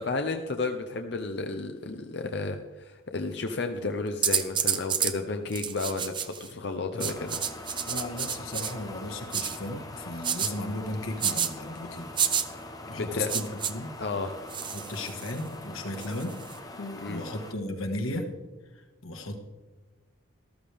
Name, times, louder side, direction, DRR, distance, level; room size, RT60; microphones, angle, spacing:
voice 1, 0.0-7.4 13.0-13.3 14.0-14.4 16.8-17.2, left 3 dB, 55° left, 5 dB, 0.7 m, -32 dB
sound 1, 4.2-5.1 5.5-6.5 7.0-8.7 9.3-9.6 10.2-10.5 11.2-11.5 12.2-12.4 13.3-13.7 14.5-15.4 16.0-16.6, right 8 dB, 25° right, 0.5 m, -29 dB
sound 2, 7.0-17.5, left 2 dB, 20° left, 0.9 m, -43 dB
voice 2, 7.9-12.1 12.9-13.9 14.7-16.3 17.1-18.3 19.0-19.4, left 1 dB, 90° left, 4 dB, 1.7 m, -35 dB
13.5 x 13.5 x 3.5 m, 1.2 s
head